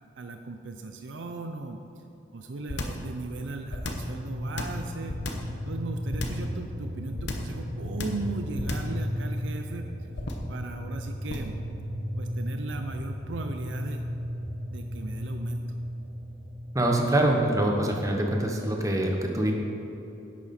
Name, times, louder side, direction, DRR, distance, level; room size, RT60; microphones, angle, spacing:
voice 1, 0.2-1.8 2.3-5.2 5.7-9.9 10.5-11.6 12.2-14.1 14.7-15.6, right 3 dB, 80° right, 5 dB, 0.6 m, -37 dB
sound 1, 2.7-3.1 3.7-4.1 4.6-5.5 6.1-6.5 7.2-7.6 8.0-8.3 8.6-9.0 10.1-10.5 11.3-11.6, left 2 dB, 65° left, 1.0 m, -33 dB
sound 2, 3.0-18.2, equal, 45° right, 1.6 m, -35 dB
voice 2, 16.7-19.5, right 1 dB, 20° right, 1 dB, 1.1 m, -24 dB
10.5 x 9.1 x 4.3 m, 3.0 s
head